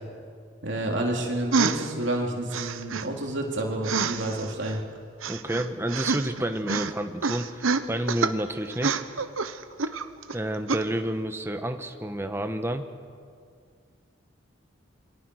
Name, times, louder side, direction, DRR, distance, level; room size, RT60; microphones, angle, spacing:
voice 1, 0.6-4.8, right 1 dB, 60° right, 0 dB, 3.7 m, -29 dB
sound 1, 1.5-1.9 2.5-3.1 3.8-4.7 5.2-6.4 6.7-6.9 7.2-8.3 8.7-10.3 10.7-10.8, right 5 dB, 85° right, 1.0 m, -27 dB
voice 2, 5.3-9.0 10.3-12.8, right 1 dB, 10° right, 7 dB, 1.2 m, -30 dB
28.5 x 23.5 x 6.5 m, 2.2 s
head